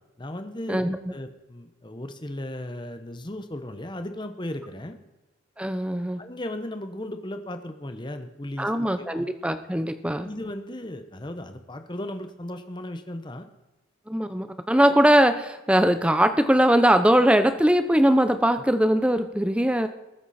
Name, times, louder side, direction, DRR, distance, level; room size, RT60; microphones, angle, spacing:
voice 1, 0.2-5.0 6.2-9.3 10.2-13.5, left 1 dB, 20° left, 8 dB, 1.0 m, -36 dB
voice 2, 5.6-6.2 8.6-10.3 14.1-19.9, equal, 5° right, 10 dB, 0.7 m, -21 dB
20.0 x 8.0 x 4.3 m, 1.1 s
head